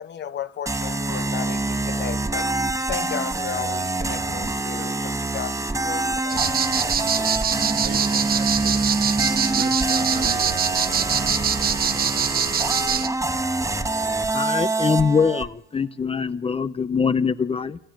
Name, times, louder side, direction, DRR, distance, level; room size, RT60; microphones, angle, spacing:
voice 1, 0.0-2.6 2.9-6.5, left 9 dB, 60° left, 1.4 m, -34 dB
sound 1, 0.6-15.5, right 2 dB, 15° right, 1.8 m, -25 dB
sound 2, 6.3-13.1, right 7 dB, 50° right, 1.2 m, -24 dB
voice 2, 7.8-8.9 9.5-10.9, right 8 dB, 70° right, 2.9 m, -37 dB
voice 3, 14.3-17.8, left 5 dB, 30° left, 0.9 m, -23 dB
27.5 x 14.0 x 9.2 m
cardioid pair, 90°, 20 cm